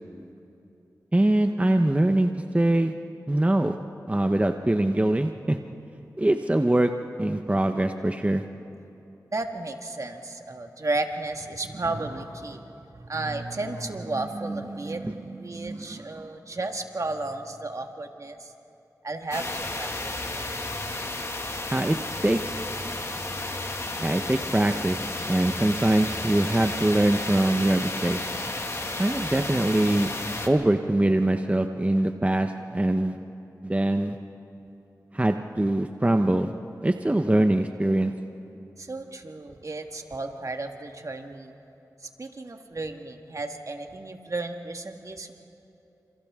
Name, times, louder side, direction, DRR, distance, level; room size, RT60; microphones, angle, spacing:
voice 1, 1.1-2.9 3.3-3.7 4.1-5.6 6.2-6.9 7.2-8.4 15.0-15.1 21.7-22.0 22.2-22.5 24.0-25.0 25.3-28.2 29.0-30.1 30.5-33.2 33.6-34.2 35.1-36.5 36.8-38.1, right 1 dB, 20° right, 6 dB, 0.9 m, -23 dB
voice 2, 9.3-18.5 19.0-20.4 38.8-41.5 42.2-45.4, right 2 dB, 50° right, 4 dB, 1.7 m, -33 dB
sound 1, 19.3-30.5, left 2 dB, 45° left, 2.0 m, -32 dB
29.0 x 27.5 x 3.7 m, 2.9 s
cardioid pair, 50°, 7 cm